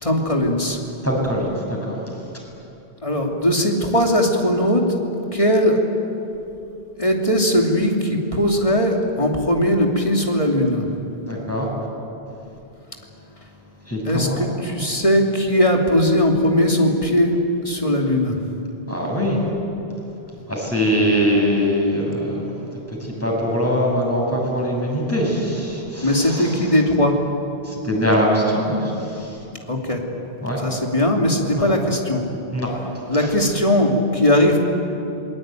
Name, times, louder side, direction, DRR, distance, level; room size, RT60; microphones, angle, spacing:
voice 1, 0.0-0.8 3.0-5.0 5.3-5.8 7.0-10.9 14.0-18.4 26.0-27.2 29.7-30.0 30.5-32.2 33.1-34.6, left 1 dB, 30° left, 0 dB, 2.9 m, -19 dB
voice 2, 1.0-2.0 11.3-11.7 13.9-14.4 18.9-19.4 20.5-26.5 27.7-29.4 30.4-30.6 31.6-31.7 32.5-32.7, equal, 15° left, -2 dB, 7.1 m, -22 dB
27.0 x 22.0 x 9.2 m, 2.9 s
omnidirectional pair, 1.1 m